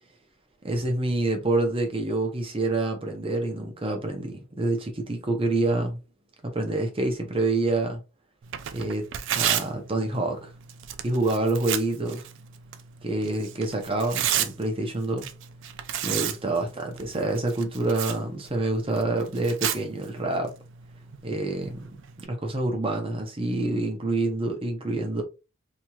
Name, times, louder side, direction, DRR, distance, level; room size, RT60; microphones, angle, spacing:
voice 1, 0.6-6.0 6.4-8.0 8.7-9.1 9.3-10.5 11.0-12.2 13.0-15.3 16.0-20.5 21.2-25.2, right 2 dB, 25° right, 0.7 m, -27 dB
Tearing, 8.4-22.3, right 10 dB, 55° right, 0.3 m, -34 dB
2.9 x 2.9 x 2.3 m
head